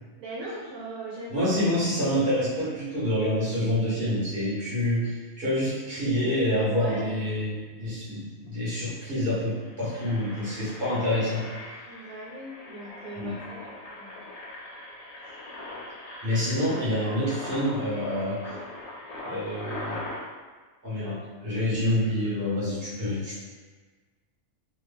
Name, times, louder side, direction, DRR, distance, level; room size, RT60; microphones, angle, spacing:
voice 1, 0.2-1.5 1.9-2.2 6.7-7.2 11.9-14.3, right 1 dB, 80° right, -5 dB, 1.0 m, -39 dB
voice 2, 1.3-11.5 13.1-13.3 16.2-18.6 19.2-20.0 20.8-23.4, left 1 dB, 40° right, -9 dB, 1.3 m, -27 dB
Engine, 8.5-8.6 8.8-9.0 9.5-20.2, left 2 dB, 85° left, 0.3 m, -41 dB
3.2 x 2.2 x 3.4 m, 1.4 s
omnidirectional pair, 1.5 m